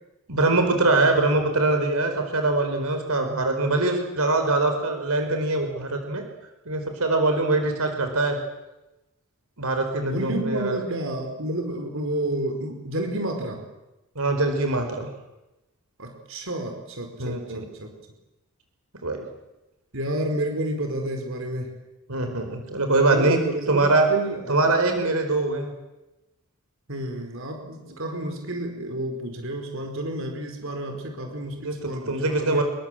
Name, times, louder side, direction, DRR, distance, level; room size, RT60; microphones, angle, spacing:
voice 1, 0.3-6.2 6.7-8.4 9.6-10.8 14.1-15.1 17.2-17.6 19.0-19.2 22.1-23.4 23.7-24.1 24.5-25.7 31.5-32.6, right 2 dB, 75° right, 5 dB, 4.6 m, -23 dB
voice 2, 10.0-13.6 16.0-17.9 19.9-21.7 23.1-24.7 26.9-32.6, right 1 dB, 60° right, 4 dB, 4.8 m, -30 dB
27.0 x 23.0 x 7.7 m, 0.98 s
head